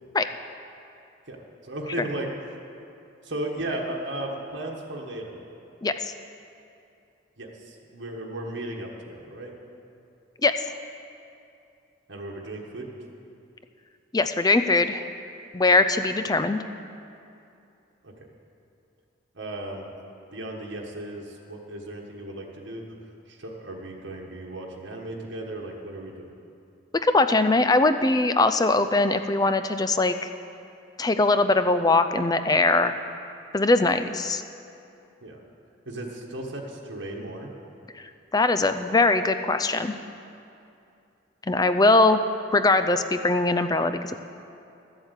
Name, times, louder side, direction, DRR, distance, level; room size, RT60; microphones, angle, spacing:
voice 1, 1.3-2.3 3.2-5.4 7.4-9.5 12.1-12.9 18.0-18.1 19.3-19.9 20.3-23.0 23.3-26.3 35.2-35.4 35.9-37.5, right 1 dB, 65° right, -1 dB, 1.4 m, -35 dB
voice 2, 5.8-6.1 10.4-10.5 14.1-15.0 15.5-16.6 27.0-30.2 31.0-32.9 33.5-34.4 38.0-40.0 41.5-42.2 42.5-44.2, left 3 dB, 20° left, 10 dB, 0.4 m, -21 dB
13.0 x 7.9 x 8.2 m, 2.6 s
head